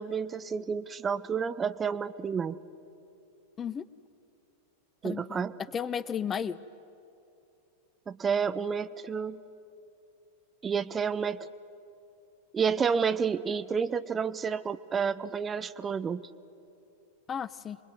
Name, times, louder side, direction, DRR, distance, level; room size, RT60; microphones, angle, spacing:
voice 1, 0.0-2.6 5.0-5.5 8.1-9.4 10.6-11.5 12.5-16.2, right 6 dB, 20° right, 13 dB, 0.6 m, -30 dB
voice 2, 5.0-5.4 5.7-6.6 17.3-17.8, left 7 dB, 20° left, 17 dB, 0.6 m, -33 dB
25.0 x 21.5 x 9.4 m, 2.7 s
figure-of-eight pair, 90°, 0 cm